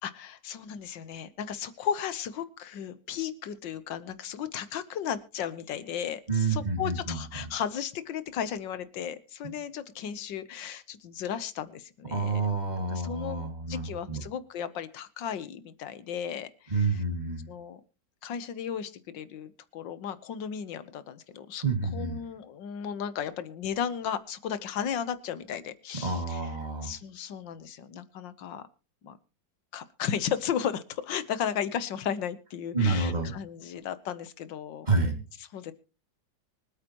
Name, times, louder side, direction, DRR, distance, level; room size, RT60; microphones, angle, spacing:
voice 1, 0.0-12.4 12.9-17.0 17.5-17.8 18.2-21.7 21.9-26.5 26.8-28.6 29.0-29.2 29.7-34.9 35.5-35.7, left 8 dB, 75° left, 13 dB, 1.7 m, -35 dB
voice 2, 6.3-7.2 9.4-9.5 12.1-14.2 16.7-17.5 21.6-22.2 26.0-26.9 32.7-33.3 34.9-35.2, right 3 dB, 25° right, 4 dB, 2.4 m, -28 dB
24.5 x 9.1 x 3.0 m, 0.35 s
omnidirectional pair, 2.0 m